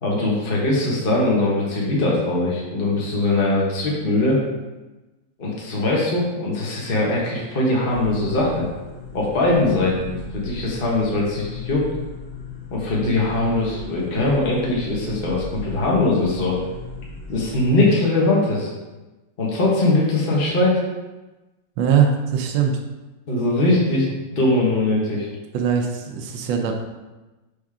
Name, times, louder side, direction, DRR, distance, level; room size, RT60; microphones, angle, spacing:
voice 1, 0.0-4.4 5.4-8.7 9.1-11.9 12.7-16.6 17.3-18.7 19.4-20.8 23.3-24.1 24.3-25.3, left 2 dB, 30° left, -4 dB, 1.3 m, -21 dB
sound 1, 7.9-17.7, left 4 dB, 80° left, 1.7 m, -37 dB
voice 2, 21.8-22.8 25.5-26.7, right 7 dB, 75° right, 2 dB, 1.4 m, -21 dB
6.3 x 5.0 x 3.6 m, 1.1 s
omnidirectional pair, 2.2 m